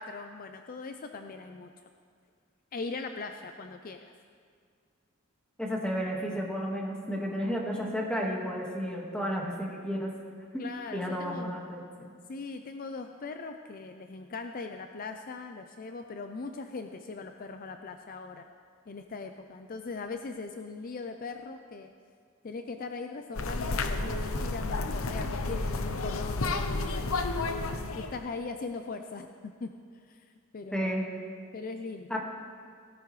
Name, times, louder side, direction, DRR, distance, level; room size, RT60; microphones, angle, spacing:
voice 1, 0.0-1.7 2.7-4.1 10.6-11.6 12.3-18.5 18.9-21.9 22.4-27.1 27.9-31.0 31.5-32.2, left 4 dB, 45° left, 6 dB, 0.5 m, -40 dB
voice 2, 5.6-10.1 10.5-10.6 10.9-12.1 30.7-31.0 32.1-32.2, equal, 5° left, -2 dB, 1.7 m, -32 dB
sound 1, 23.3-28.2, left 3 dB, 85° left, 0.8 m, -31 dB
17.0 x 15.0 x 3.2 m, 2.1 s
head